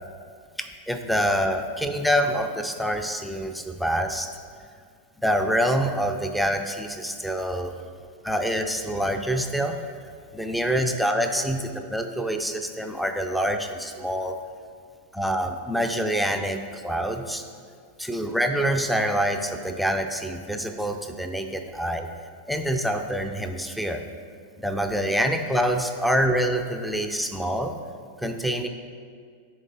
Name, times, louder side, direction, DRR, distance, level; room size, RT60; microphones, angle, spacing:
voice 1, 0.6-4.3 5.2-7.7 8.2-9.8 10.3-14.4 15.1-17.4 18.0-22.1 22.5-24.0 24.6-27.7 28.2-28.7, equal, ahead, 6 dB, 0.5 m, -26 dB
10.5 x 3.4 x 3.8 m, 2.1 s
figure-of-eight pair, 90°, 0 cm